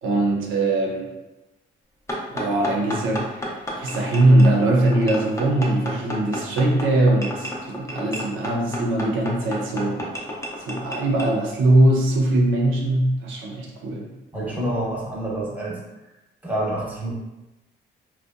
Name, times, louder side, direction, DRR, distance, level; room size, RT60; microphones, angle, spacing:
voice 1, 0.0-1.1 2.3-10.0 10.6-14.1, right 1 dB, 80° right, -1 dB, 0.6 m, -21 dB
sound 1, 2.1-11.3, equal, 15° left, 0.5 m, -31 dB
voice 2, 14.3-15.8 16.4-17.1, right 1 dB, 10° right, -5 dB, 0.9 m, -27 dB
2.7 x 2.1 x 2.4 m, 1.0 s
cardioid pair, 90°, 20 cm